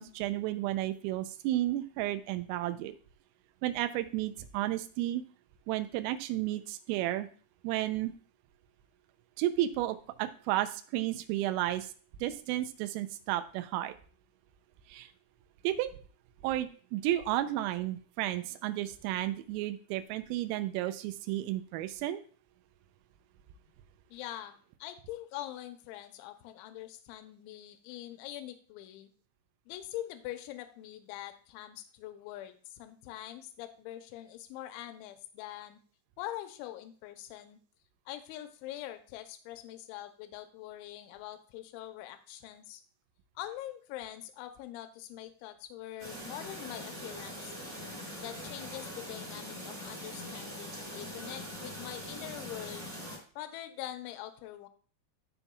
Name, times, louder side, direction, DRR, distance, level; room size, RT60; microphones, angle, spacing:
voice 1, 0.0-3.0 3.6-5.2 5.7-7.3 7.6-8.1 9.4-11.9 12.2-13.9 14.9-15.1 15.6-15.9 16.4-22.2, right 14 dB, 85° right, 10 dB, 3.3 m, -32 dB
voice 2, 24.1-29.1 29.7-35.8 36.2-37.6 38.1-42.8 43.4-47.6 48.2-52.9 53.4-54.7, left 13 dB, 80° left, 8 dB, 2.8 m, -44 dB
Chirp tweet, 46.0-53.2, equal, 20° right, 2.4 m, -42 dB
16.5 x 5.5 x 2.3 m, 0.42 s
omnidirectional pair, 5.9 m